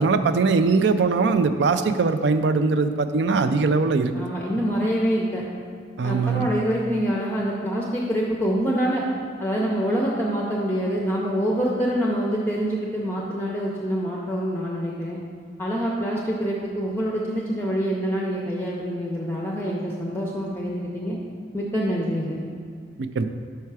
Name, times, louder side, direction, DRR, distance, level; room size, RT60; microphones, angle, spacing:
voice 1, 0.0-4.1 6.0-6.5 23.0-23.2, right 4 dB, 70° right, 10 dB, 0.4 m, -21 dB
voice 2, 4.1-5.4 6.0-9.1 9.4-15.2 15.6-21.2 21.5-22.4, equal, 10° left, -4 dB, 0.5 m, -26 dB
5.6 x 5.6 x 4.7 m, 2.2 s
head